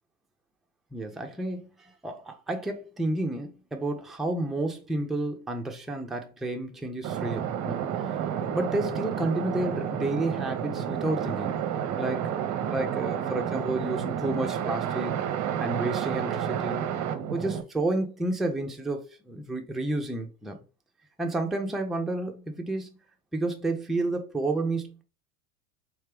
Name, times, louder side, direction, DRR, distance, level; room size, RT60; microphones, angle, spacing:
voice 1, 0.9-11.6 12.0-12.4 12.6-15.2 15.6-16.9 17.3-20.6 21.2-22.9 23.3-25.0, right 2 dB, ahead, 0.4 m, -31 dB
sound 1, 7.0-17.6, right 9 dB, 40° right, 0.7 m, -30 dB
3.3 x 3.2 x 3.3 m
hypercardioid pair, 85°, 45 cm